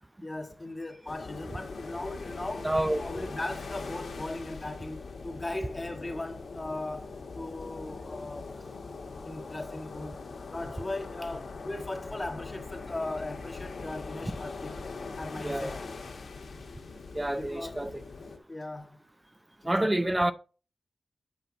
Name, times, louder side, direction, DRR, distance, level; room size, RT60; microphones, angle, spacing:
voice 1, 0.2-8.5 9.2-10.2 10.5-14.8 15.2-15.8 17.4-17.9 18.5-19.0 19.6-19.9, left 2 dB, 25° left, 1.7 m, -38 dB
sound 1, 1.1-18.4, left 4 dB, 85° left, 1.7 m, -41 dB
voice 2, 2.6-3.0 15.4-15.8 17.1-17.9 19.7-20.3, right 1 dB, 15° right, 0.6 m, -28 dB
8.1 x 5.8 x 4.0 m
wide cardioid pair, 95°, 0 cm